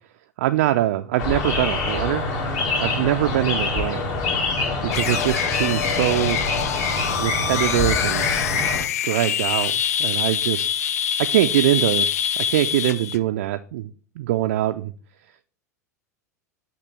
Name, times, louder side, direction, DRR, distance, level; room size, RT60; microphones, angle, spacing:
voice 1, 0.4-2.2 2.8-4.1 4.8-6.4 7.2-8.3 9.0-10.7 11.3-12.1 12.5-14.9, right 14 dB, 55° right, 8 dB, 0.4 m, -23 dB
sound 1, 1.2-8.8, left 3 dB, 45° left, 2.2 m, -25 dB
sound 2, 4.9-13.2, left 9 dB, 65° left, 0.4 m, -25 dB
6.0 x 5.8 x 3.4 m, 0.41 s
figure-of-eight pair, 85°, 9 cm